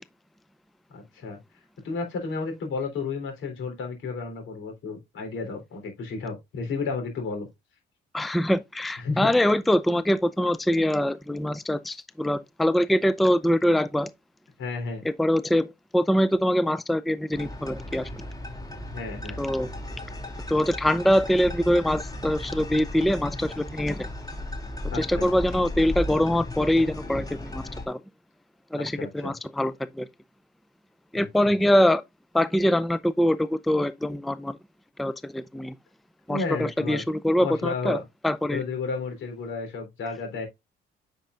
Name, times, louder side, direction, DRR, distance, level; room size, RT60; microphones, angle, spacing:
voice 1, 0.9-1.4 1.8-7.5 9.0-9.3 14.6-15.0 18.9-19.4 24.9-25.3 28.8-29.4 31.1-31.5 36.3-37.0 37.4-38.0 38.5-40.5, left 4 dB, 80° left, 3.6 m, -32 dB
voice 2, 8.1-14.1 15.0-18.1 19.4-19.7 20.5-24.1 24.9-28.0 28.7-30.1 31.1-32.0 32.3-34.6 35.0-35.8 36.3-38.0 38.2-38.6, equal, ahead, 0.4 m, -24 dB
sound 1, 17.3-27.9, left 1 dB, 20° left, 2.8 m, -36 dB
8.9 x 5.5 x 2.5 m
cardioid pair, 90°, 20 cm